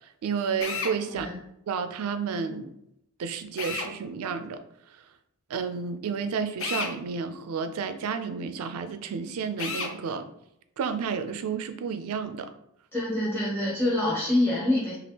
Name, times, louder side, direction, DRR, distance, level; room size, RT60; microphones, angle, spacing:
voice 1, 0.2-1.3 1.7-2.7 3.2-4.6 4.9-5.0 5.5-10.3 10.8-12.5, right 6 dB, 75° right, 9 dB, 0.3 m, -31 dB
Drill, 0.6-1.0 3.6-3.9 6.6-6.9 9.6-9.9, left 5 dB, 60° left, 0.5 m, -31 dB
voice 2, 12.9-15.0, left 1 dB, 10° left, -7 dB, 1.3 m, -26 dB
3.4 x 2.4 x 2.8 m, 0.79 s
head